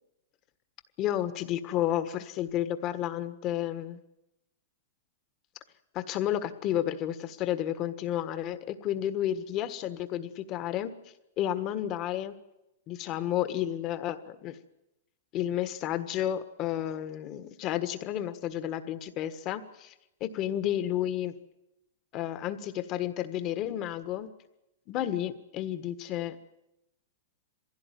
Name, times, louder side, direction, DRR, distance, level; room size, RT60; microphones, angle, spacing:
voice 1, 1.0-4.0 5.9-10.9 11.4-12.3 12.9-14.6 15.3-19.9 20.2-21.3 22.1-24.3 24.9-26.4, left 11 dB, 35° left, 11 dB, 1.5 m, -31 dB
22.0 x 16.0 x 9.3 m, 0.91 s
hypercardioid pair, 145°, 0 cm